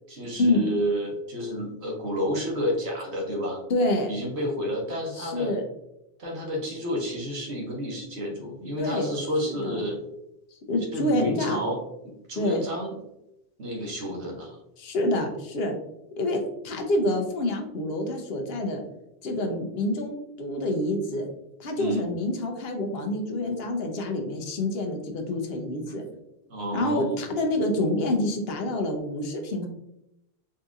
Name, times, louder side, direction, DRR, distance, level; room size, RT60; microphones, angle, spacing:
voice 1, 0.1-3.6 4.1-5.5 6.2-10.0 10.9-11.8 12.3-13.0 13.6-14.6 21.8-22.1 26.5-27.2, equal, 85° right, 0 dB, 1.2 m, -30 dB
voice 2, 3.7-4.1 5.2-5.6 8.8-9.1 9.5-9.8 10.5-11.6 12.4-12.7 14.8-15.8 16.2-18.8 19.2-21.3 21.6-26.0 26.7-29.7, left 1 dB, 70° left, 3 dB, 0.9 m, -27 dB
3.9 x 2.7 x 2.3 m, 0.83 s
omnidirectional pair, 1.1 m